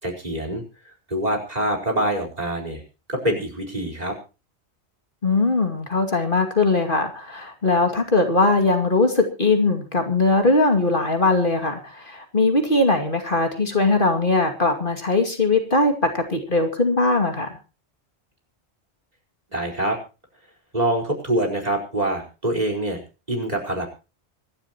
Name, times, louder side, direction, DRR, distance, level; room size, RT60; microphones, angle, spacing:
voice 1, 0.0-2.8 3.1-4.2 19.5-20.0 20.7-23.0 23.3-23.9, right 1 dB, 35° right, 4 dB, 4.9 m, -25 dB
voice 2, 5.2-17.6, left 3 dB, 50° left, 4 dB, 2.6 m, -20 dB
25.5 x 11.5 x 3.0 m, 0.32 s
omnidirectional pair, 1.1 m